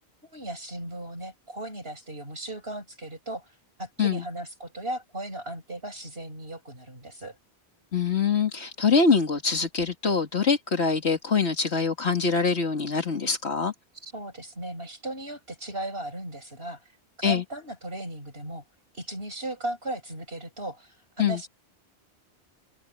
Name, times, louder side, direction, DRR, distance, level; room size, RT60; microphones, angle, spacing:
voice 1, 0.2-7.4 14.0-16.8 17.2-18.6 18.9-21.5, right 1 dB, 60° right, 8.2 m, -37 dB
voice 2, 7.9-13.7 17.2-17.4 21.2-21.4, left 5 dB, 75° left, 2.5 m, -24 dB
open air
omnidirectional pair, 1.1 m